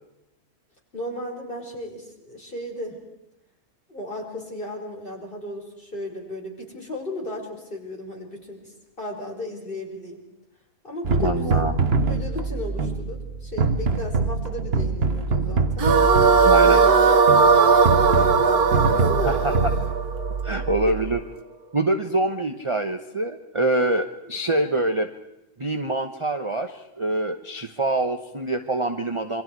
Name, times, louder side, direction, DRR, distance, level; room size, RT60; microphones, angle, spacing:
voice 1, 0.9-3.0 3.9-10.2 10.8-11.7 12.1-15.9 16.4-19.6 20.8-20.9, left 1 dB, 35° left, 0 dB, 5.2 m, -34 dB
sound 1, 11.0-21.2, right 4 dB, 45° right, 1.4 m, -25 dB
voice 2, 11.2-11.7 16.4-16.8 19.2-19.6 20.4-21.2 21.7-25.1 25.6-29.4, right 2 dB, 25° right, 6 dB, 1.0 m, -25 dB
sound 2, 15.8-21.0, right 5 dB, 80° right, 1.8 m, -18 dB
28.0 x 24.5 x 4.7 m, 0.90 s
omnidirectional pair, 1.6 m